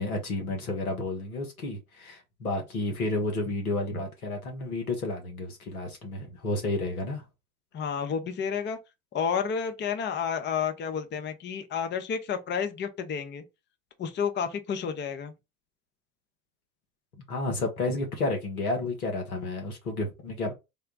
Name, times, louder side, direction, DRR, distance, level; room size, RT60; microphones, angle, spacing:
voice 1, 0.0-7.2 17.3-20.5, left 2 dB, 85° left, 1.1 m, -31 dB
voice 2, 7.7-8.8 9.1-13.4 14.0-15.3, left 7 dB, 25° left, 0.7 m, -30 dB
3.6 x 2.2 x 3.8 m
hypercardioid pair, 70°, 43 cm